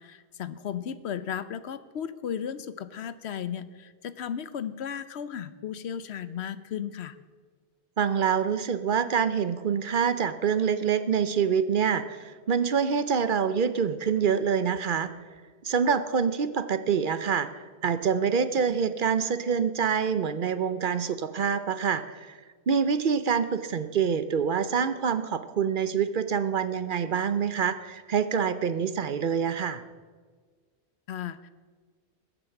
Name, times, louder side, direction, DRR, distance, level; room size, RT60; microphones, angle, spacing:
voice 1, 0.0-7.2 31.1-31.5, left 8 dB, 80° left, 14 dB, 1.0 m, -35 dB
voice 2, 8.0-15.1 15.6-22.4 22.7-29.8, right 7 dB, 55° right, 12 dB, 0.8 m, -26 dB
20.5 x 7.9 x 5.9 m, 1.5 s
omnidirectional pair, 1.1 m